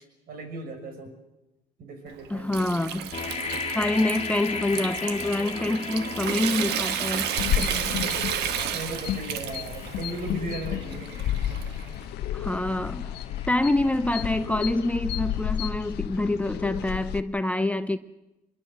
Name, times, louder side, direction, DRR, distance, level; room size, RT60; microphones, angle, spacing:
voice 1, 0.3-1.1 1.8-2.7 7.5-11.1, right 2 dB, 60° right, 5 dB, 6.2 m, -37 dB
Water tap faucet / Sink (filling or washing) / Trickle dribble, 2.1-12.0, right 10 dB, 80° right, 1.4 m, -33 dB
voice 2, 2.3-3.1 3.7-7.3 12.3-13.1 13.5-18.0, left 2 dB, 10° left, 11 dB, 0.8 m, -26 dB
sound 1, 3.1-14.9, left 5 dB, 35° left, 2.1 m, -38 dB
sound 2, 7.4-17.2, left 11 dB, 75° left, 1.1 m, -32 dB
25.0 x 22.5 x 7.6 m, 1.0 s
cardioid pair, 110°, 17 cm